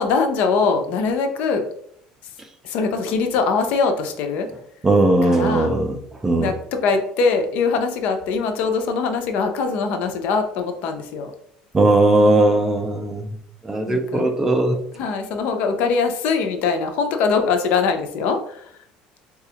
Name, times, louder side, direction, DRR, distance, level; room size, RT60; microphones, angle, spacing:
voice 1, 0.0-1.6 2.2-2.3 2.6-4.5 5.2-5.7 6.4-11.3 13.9-14.2 14.9-18.8, left 4 dB, 65° left, 6 dB, 0.5 m, -22 dB
voice 2, 4.8-6.5 11.7-13.4 13.6-14.8, right 2 dB, 15° right, 5 dB, 0.4 m, -18 dB
4.0 x 2.4 x 2.8 m, 0.68 s
cardioid pair, 140°, 3 cm